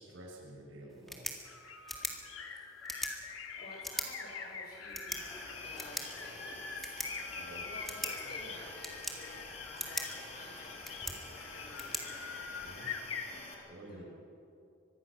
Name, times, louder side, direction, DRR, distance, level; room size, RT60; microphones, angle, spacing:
voice 1, 0.0-1.5 7.4-7.7 12.6-12.9 13.7-14.1, right 1 dB, 70° right, -1 dB, 6.3 m, -50 dB
sound 1, 0.9-12.9, equal, ahead, 2.0 m, -44 dB
sound 2, 1.4-13.3, left 5 dB, 80° left, 2.1 m, -45 dB
voice 2, 2.2-3.0 3.6-7.3 7.6-12.3 13.3-14.1, left 1 dB, 50° left, -1 dB, 5.3 m, -53 dB
sound 3, 5.1-13.5, left 2 dB, 35° left, 3.4 m, -48 dB
24.5 x 20.5 x 6.3 m, 2.6 s
head